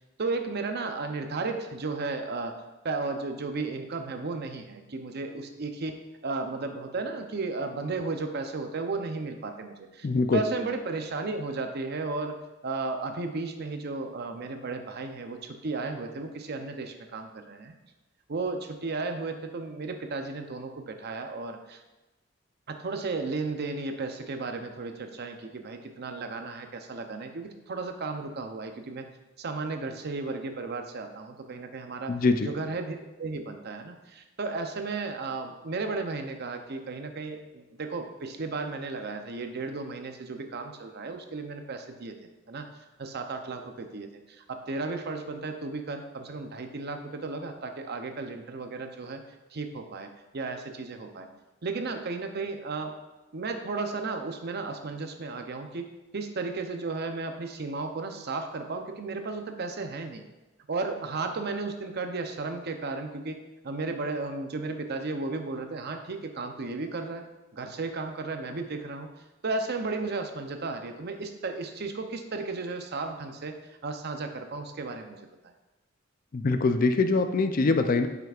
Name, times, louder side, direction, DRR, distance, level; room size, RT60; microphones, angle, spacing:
voice 1, 0.2-2.5 2.8-10.1 10.3-12.4 12.6-17.7 18.3-21.8 22.7-29.1 29.4-32.1 32.4-49.2 49.5-50.1 50.3-51.3 51.6-52.9 53.3-55.9 56.1-60.2 60.7-67.2 67.5-69.1 69.4-73.5 73.8-75.2, right 3 dB, 55° right, 6 dB, 0.6 m, -34 dB
voice 2, 10.0-10.4 32.1-32.5 76.3-78.1, left 3 dB, 45° left, 7 dB, 0.4 m, -23 dB
8.9 x 5.8 x 2.4 m, 1.1 s
head